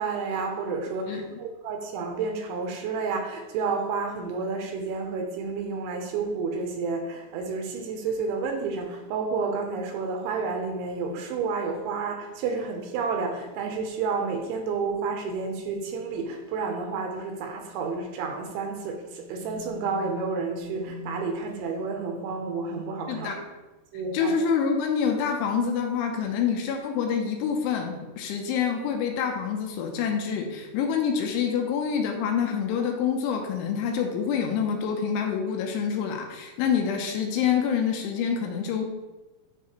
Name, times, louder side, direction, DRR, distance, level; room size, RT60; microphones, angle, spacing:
voice 1, 0.0-23.4 23.9-24.4, right 4 dB, 80° right, 3 dB, 3.1 m, -30 dB
voice 2, 1.1-1.4 23.1-23.4 24.1-38.8, left 7 dB, 80° left, 3 dB, 3.1 m, -27 dB
10.0 x 5.9 x 3.1 m, 1.1 s
omnidirectional pair, 5.7 m